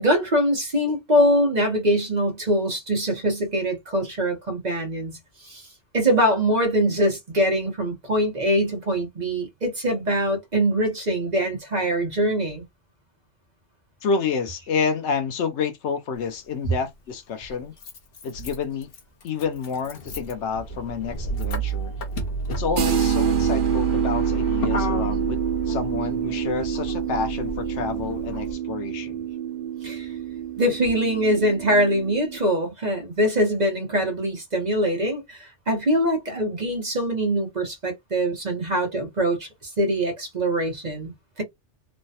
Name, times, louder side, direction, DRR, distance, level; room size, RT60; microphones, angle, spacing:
voice 1, 0.0-5.2 5.4-5.7 5.9-12.6 29.8-30.1 30.6-41.4, equal, 40° right, 1.0 m, -23 dB
voice 2, 14.0-17.7 18.2-18.9 19.2-21.9 22.5-25.4 25.7-29.2, left 5 dB, 75° left, 0.9 m, -29 dB
Motor vehicle (road), 16.2-16.3 17.4-28.5, right 1 dB, 55° left, 0.9 m, -31 dB
sound 1, 22.8-32.4, right 9 dB, 55° right, 0.6 m, -27 dB
3.2 x 2.1 x 2.7 m
omnidirectional pair, 1.2 m